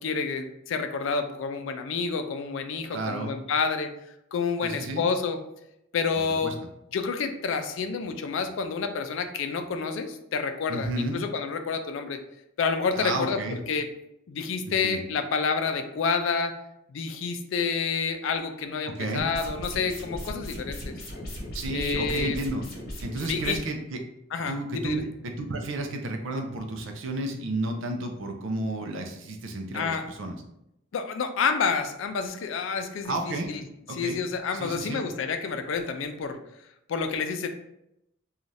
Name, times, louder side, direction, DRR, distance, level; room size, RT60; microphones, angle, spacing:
voice 1, 0.0-3.9 4.3-5.4 5.9-6.5 6.9-12.2 12.6-13.9 14.3-16.5 16.9-20.9 21.7-22.4 23.3-23.6 24.3-25.0 29.7-30.0 30.9-33.6 33.9-36.4 36.9-37.5, left 5 dB, 70° left, 7 dB, 0.3 m, -29 dB
voice 2, 2.9-3.3 4.6-5.1 6.4-6.5 10.7-11.2 12.9-13.6 14.7-15.0 18.9-19.3 21.5-22.6 23.0-24.0 24.5-30.4 33.0-33.5 33.9-34.2 34.5-35.1, right 2 dB, 70° right, 4 dB, 0.5 m, -32 dB
sound 1, 19.2-23.6, equal, 50° left, 0.9 m, -37 dB
2.6 x 2.4 x 3.1 m, 0.82 s
head